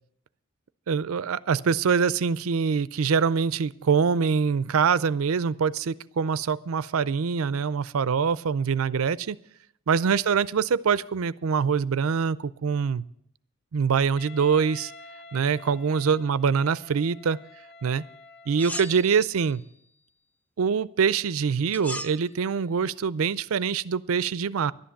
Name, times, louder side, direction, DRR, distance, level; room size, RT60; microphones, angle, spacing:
voice 1, 0.9-9.4 9.9-13.0 13.7-14.9 15.3-17.4 17.8-18.0 18.5-19.6 20.6-24.7, right 6 dB, 90° right, 18 dB, 0.5 m, -24 dB
Wind instrument woodwind instrument, 14.2-19.2, left 2 dB, 50° left, 0.6 m, -48 dB
sound 1, 18.6-19.6 21.7-22.3, left 1 dB, 5° left, 0.4 m, -37 dB
12.0 x 10.5 x 7.1 m, 0.72 s
head